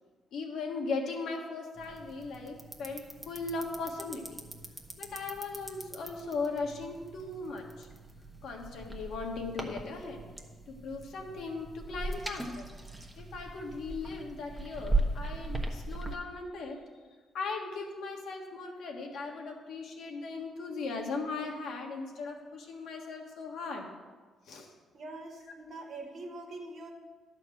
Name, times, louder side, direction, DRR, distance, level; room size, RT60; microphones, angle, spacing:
voice 1, 0.3-4.4 5.0-7.9 8.4-10.3 10.7-12.7 13.2-16.8 17.3-23.9 24.5-24.7, left 3 dB, 75° left, 1 dB, 1.6 m, -38 dB
sound 1, 1.8-16.2, right 2 dB, 10° right, 1.2 m, -39 dB
voice 2, 24.9-26.9, right 2 dB, 55° right, 2 dB, 1.7 m, -44 dB
11.5 x 4.5 x 7.4 m, 1.4 s
cardioid pair, 90°, 0 cm